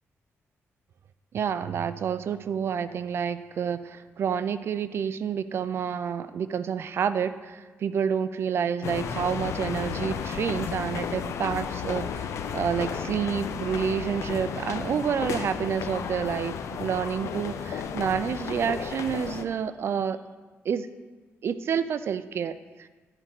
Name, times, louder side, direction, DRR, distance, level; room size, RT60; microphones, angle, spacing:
voice 1, 1.3-20.2 20.6-20.9 21.4-22.9, right 7 dB, 55° right, 13 dB, 0.4 m, -29 dB
sound 1, 8.8-19.4, left 7 dB, 80° left, 0.5 m, -33 dB
10.5 x 5.0 x 5.9 m, 1.3 s
wide cardioid pair, 130°, 5 cm